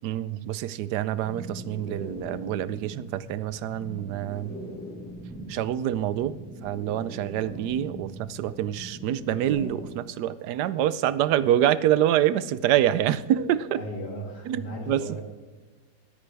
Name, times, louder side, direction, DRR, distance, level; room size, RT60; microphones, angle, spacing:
voice 1, 0.0-4.6 5.5-6.4 6.6-13.8 14.5-15.1, right 11 dB, 80° right, 16 dB, 1.1 m, -26 dB
sound 1, 1.2-9.9, equal, 5° left, 3.4 m, -41 dB
voice 2, 13.8-15.2, equal, 85° left, 0 dB, 3.1 m, -36 dB
23.5 x 8.7 x 3.4 m, 1.3 s
omnidirectional pair, 1.7 m